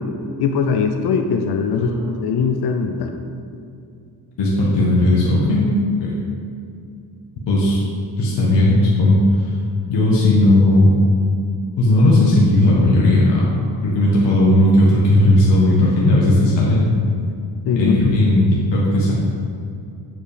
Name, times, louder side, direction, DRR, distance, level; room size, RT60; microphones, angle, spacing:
voice 1, 0.4-1.9 2.2-3.1 17.7-18.1, left 5 dB, 65° left, 5 dB, 0.7 m, -20 dB
voice 2, 1.8-2.1 4.4-5.7 6.0-6.1 7.5-7.8 8.2-9.5 9.9-11.0 11.8-13.5 13.8-16.9 17.7-19.1, left 1 dB, 85° left, -6 dB, 1.5 m, -15 dB
8.1 x 4.7 x 5.0 m, 2.5 s
cardioid pair, 145°, 41 cm